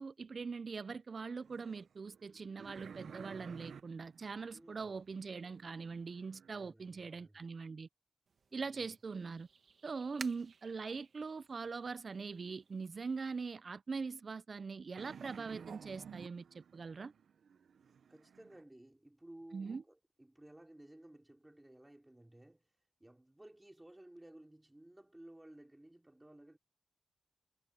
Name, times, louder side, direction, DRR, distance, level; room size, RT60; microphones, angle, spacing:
voice 1, 0.0-7.9 8.5-9.5 9.8-17.1 19.5-19.8, right 4 dB, 45° right, 0.5 m, -42 dB
sound 1, 1.4-6.6 15.0-18.6, right 7 dB, 85° right, 1.0 m, -54 dB
voice 2, 4.5-5.0 6.5-7.5 8.5-8.9 18.1-26.6, right 1 dB, 10° right, 4.9 m, -57 dB
sound 2, 8.3-13.5, right 5 dB, 60° right, 1.8 m, -56 dB
wide cardioid pair, 135°, 0 cm